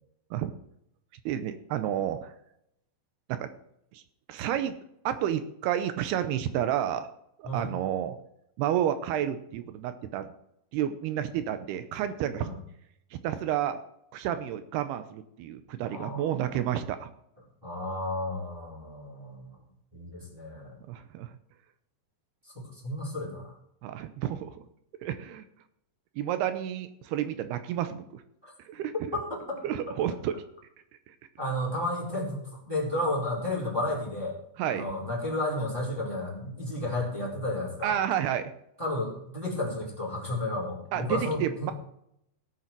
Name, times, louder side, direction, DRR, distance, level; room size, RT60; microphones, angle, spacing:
voice 1, 1.3-2.3 3.3-3.5 3.9-4.0 4.3-4.7 5.1-7.1 7.4-8.2 8.6-10.3 10.7-12.5 13.1-13.8 14.1-17.1 20.9-21.3 23.8-24.6 25.0-25.4 26.2-28.2 28.7-28.9 29.6-30.4 34.6-34.9 37.8-38.5 40.9-41.7, right 10 dB, 75° right, 10 dB, 2.5 m, -30 dB
voice 2, 15.9-16.6 17.6-19.6 19.9-20.8 22.5-23.5 28.4-28.5 29.1-29.6 31.4-34.3 34.7-38.0 38.8-41.7, left 1 dB, 5° right, -4 dB, 3.9 m, -32 dB
18.0 x 8.5 x 4.6 m, 0.76 s
omnidirectional pair, 5.1 m